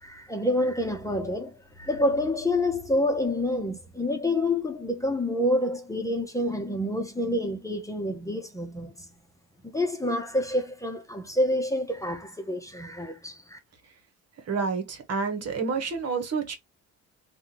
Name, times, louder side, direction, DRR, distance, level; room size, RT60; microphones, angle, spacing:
voice 1, 0.0-9.1 9.6-13.6, left 1 dB, 10° left, 1.0 m, -28 dB
voice 2, 14.5-16.6, right 5 dB, 55° right, 1.4 m, -29 dB
3.5 x 2.6 x 4.2 m
cardioid pair, 90°, 30 cm